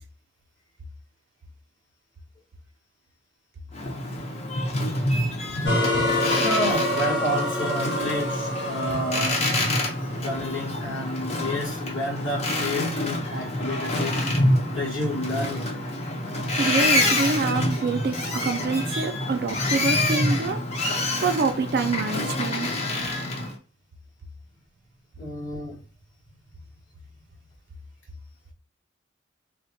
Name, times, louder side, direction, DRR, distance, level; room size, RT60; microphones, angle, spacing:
Boat Water vehicle, 3.7-23.5, left 1 dB, 35° left, 0.5 m, -27 dB
sound 1, 5.6-10.6, left 1 dB, 60° left, 0.9 m, -27 dB
voice 1, 6.2-9.4 10.2-14.2 14.7-15.7 25.2-25.7, left 1 dB, 80° left, 1.4 m, -30 dB
voice 2, 16.6-20.6 21.2-22.7, right 4 dB, 50° right, 0.3 m, -26 dB
3.3 x 2.2 x 2.5 m
head